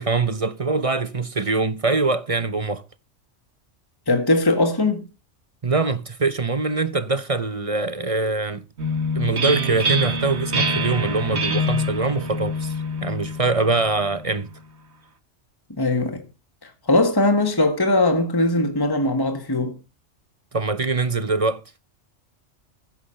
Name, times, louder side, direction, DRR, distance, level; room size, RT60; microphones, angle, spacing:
voice 1, 0.0-2.8 5.6-8.6 9.1-12.7 13.0-14.5 20.5-21.6, right 3 dB, 30° right, 0.9 m, -23 dB
voice 2, 4.1-5.0 15.8-16.2 16.6-19.7, left 2 dB, 20° left, 1.7 m, -20 dB
sound 1, 8.8-14.4, equal, 60° right, 1.9 m, -26 dB
15.0 x 8.2 x 5.7 m
omnidirectional pair, 1.3 m